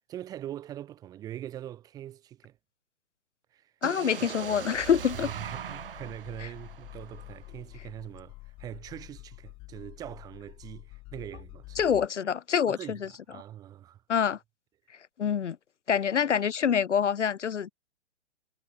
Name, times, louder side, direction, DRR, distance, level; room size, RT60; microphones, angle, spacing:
voice 1, 0.1-2.6 3.5-3.7 4.2-4.3 5.1-11.9 12.7-14.0, right 12 dB, 10° right, 1.0 m, -42 dB
voice 2, 3.8-5.3 11.8-13.0 14.1-14.4 15.2-15.6 15.9-17.7, left 8 dB, 70° left, 0.6 m, -26 dB
sound 1, 3.8-7.7, right 9 dB, 45° right, 3.0 m, -40 dB
sound 2, 4.7-12.1, left 22 dB, 15° left, 0.9 m, -48 dB
figure-of-eight pair, 125°, 37 cm